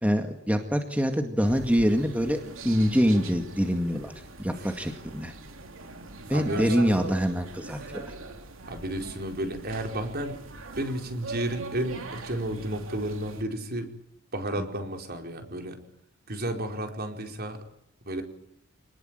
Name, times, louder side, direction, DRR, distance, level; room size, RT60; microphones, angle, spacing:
voice 1, 0.0-4.1 4.4-5.3 6.3-8.1, equal, 5° right, 5 dB, 2.1 m, -25 dB
sound 1, 1.4-13.4, right 3 dB, 70° right, 3.3 m, -42 dB
voice 2, 4.5-4.8 6.3-6.9 7.7-7.9 8.7-10.4 10.8-13.9 14.3-15.8 16.3-17.6 18.0-18.2, right 1 dB, 50° right, 4 dB, 4.7 m, -32 dB
27.5 x 20.0 x 9.0 m, 0.77 s
head